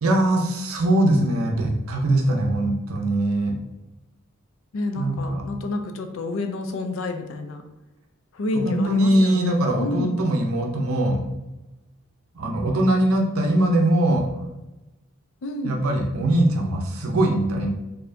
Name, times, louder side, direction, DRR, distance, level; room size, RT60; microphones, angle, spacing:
voice 1, 0.0-3.5 4.9-5.4 8.5-11.2 12.3-14.3 15.6-17.7, right 1 dB, 85° right, 2 dB, 0.6 m, -21 dB
voice 2, 4.7-7.6 8.3-10.1 15.4-15.8, left 2 dB, 70° left, 6 dB, 0.4 m, -29 dB
4.1 x 2.7 x 2.6 m, 1.0 s
head